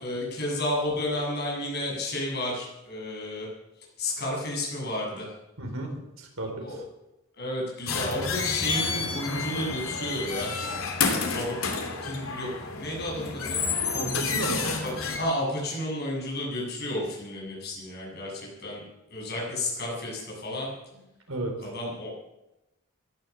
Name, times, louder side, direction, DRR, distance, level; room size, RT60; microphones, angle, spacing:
voice 1, 0.0-3.5 4.0-5.3 6.6-6.8 7.3-10.6 11.2-11.6 12.0-12.5 12.8-13.7 14.8-18.8 19.1-20.7 21.6-22.1, left 1 dB, 50° left, -3 dB, 7.6 m, -32 dB
voice 2, 5.6-6.8 13.9-14.7 20.9-21.7, right 2 dB, 70° right, 2 dB, 4.0 m, -33 dB
sound 1, 7.9-15.2, left 5 dB, 75° left, 2.8 m, -30 dB
17.0 x 11.0 x 7.0 m, 0.95 s
head